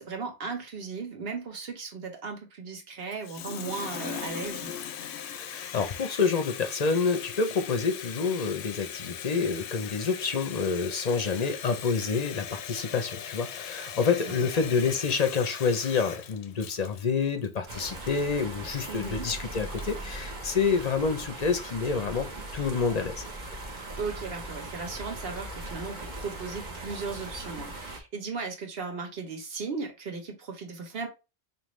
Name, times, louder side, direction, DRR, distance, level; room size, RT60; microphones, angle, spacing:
voice 1, 0.0-4.7 14.0-14.6 18.9-19.3 24.0-31.1, right 4 dB, 65° right, 1.3 m, -36 dB
Water tap faucet, 3.1-20.0, left 9 dB, 90° left, 0.8 m, -40 dB
voice 2, 5.4-23.1, left 5 dB, 45° left, 0.6 m, -28 dB
sound 1, 17.7-28.0, right 2 dB, 45° right, 1.2 m, -39 dB
5.0 x 2.6 x 3.1 m
omnidirectional pair, 1.1 m